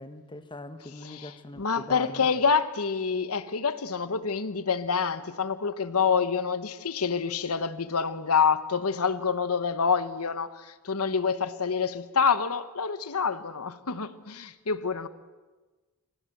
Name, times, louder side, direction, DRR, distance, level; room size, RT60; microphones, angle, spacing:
voice 1, 0.0-2.3, left 2 dB, 20° left, 1.2 m, -42 dB
voice 2, 1.0-15.1, left 5 dB, 80° left, 1.1 m, -27 dB
29.0 x 25.0 x 7.9 m
head